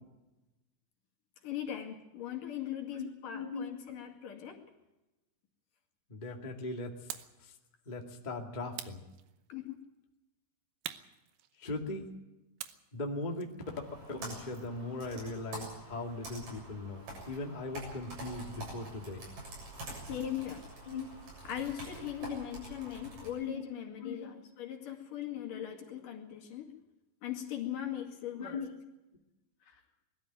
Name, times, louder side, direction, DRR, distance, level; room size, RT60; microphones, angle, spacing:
voice 1, 1.4-4.6 9.5-9.8 20.1-20.7 21.4-26.7 27.2-28.6 29.6-29.8, left 10 dB, 65° left, 3 dB, 3.7 m, -39 dB
voice 2, 3.3-3.7 6.1-6.9 7.4-7.5 7.8-9.0 11.6-12.1 12.9-13.5 14.1-19.3 20.9-21.1 22.2-22.5 23.3-23.6 24.0-24.3 28.4-28.7, left 2 dB, 15° left, 1 dB, 1.6 m, -39 dB
sound 1, 7.1-7.4 8.7-9.7 10.8-12.0 12.6-14.8, right 13 dB, 85° right, 2.8 m, -46 dB
Computer keyboard, 13.6-23.3, right 2 dB, 65° right, 8.9 m, -46 dB
21.5 x 13.5 x 9.1 m, 1.0 s
omnidirectional pair, 4.2 m